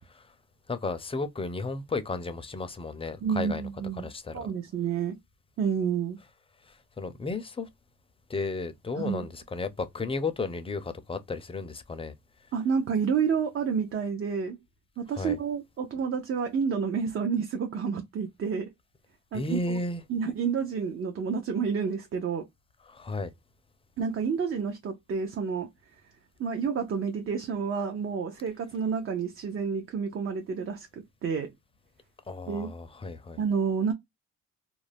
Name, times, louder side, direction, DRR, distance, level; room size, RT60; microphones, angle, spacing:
voice 1, 0.7-3.6 4.0-4.4 7.0-7.7 8.3-12.1 15.2-15.4 19.3-20.0 22.9-23.3 32.3-33.4, left 3 dB, 20° left, 0.5 m, -33 dB
voice 2, 3.2-5.2 5.6-6.2 9.0-9.3 12.5-14.6 15.0-18.7 19.3-19.8 20.1-22.5 24.0-25.7 26.4-30.9 31.2-31.5 32.5-32.7 33.4-33.9, right 6 dB, 45° right, 0.5 m, -29 dB
2.5 x 2.1 x 3.2 m
cardioid pair, 90°, 30 cm